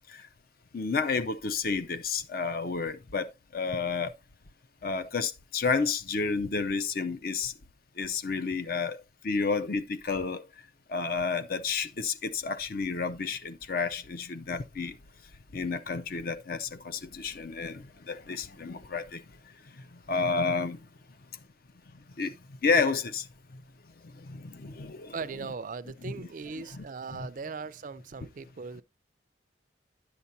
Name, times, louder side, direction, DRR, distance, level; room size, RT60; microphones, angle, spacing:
voice 1, 0.7-4.1 4.8-7.5 8.0-9.0 9.2-10.4 10.9-15.0 15.5-19.2 19.9-20.8 22.2-22.4 22.6-23.3 24.1-25.1 26.0-26.3 26.6-26.8 27.2-27.3, left 4 dB, 50° left, 0.5 m, -31 dB
voice 2, 25.1-28.8, right 5 dB, 45° right, 0.4 m, -39 dB
10.0 x 6.9 x 2.7 m
head